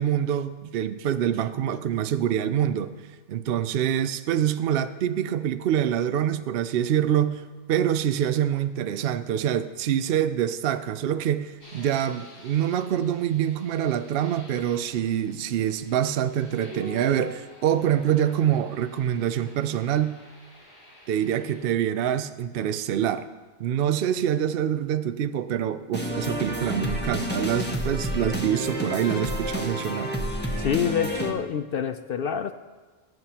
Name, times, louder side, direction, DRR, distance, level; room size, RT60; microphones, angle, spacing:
voice 1, 0.0-2.9 3.3-7.4 7.7-20.2 21.1-23.3 23.6-30.1, right 10 dB, 65° right, 11 dB, 0.6 m, -25 dB
sound 1, 11.6-21.6, equal, 40° left, 5.2 m, -47 dB
sound 2, 25.9-31.3, equal, 10° left, 1.2 m, -29 dB
voice 2, 30.6-32.5, left 8 dB, 65° left, 9 dB, 0.5 m, -27 dB
22.0 x 9.5 x 2.9 m, 1.3 s
omnidirectional pair, 1.4 m